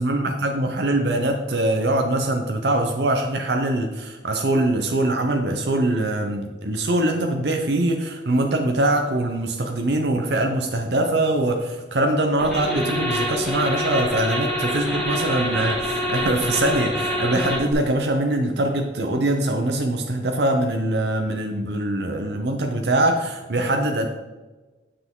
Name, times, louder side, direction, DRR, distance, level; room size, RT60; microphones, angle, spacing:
voice 1, 0.0-24.1, right 1 dB, 65° right, 4 dB, 0.7 m, -23 dB
sound 1, 12.4-17.7, equal, ahead, 3.0 m, -26 dB
9.5 x 6.0 x 3.8 m, 1.2 s
head